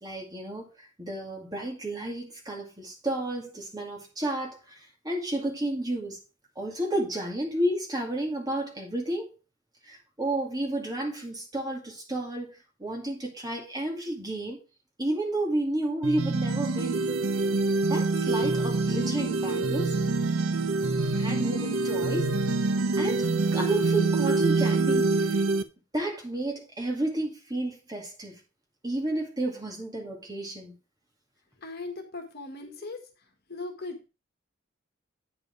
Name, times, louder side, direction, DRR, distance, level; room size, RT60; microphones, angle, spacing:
voice 1, 0.0-6.2 6.6-9.3 9.8-14.6 15.0-17.0 17.7-19.9 21.1-22.3 22.9-25.4 25.9-28.4 28.8-30.7 32.8-32.9, right 1 dB, 20° right, 2.3 m, -32 dB
sound 1, 16.0-25.6, right 3 dB, 90° right, 0.9 m, -25 dB
voice 2, 31.6-33.0 33.5-34.1, left 3 dB, 50° left, 1.6 m, -38 dB
8.8 x 5.3 x 4.7 m
head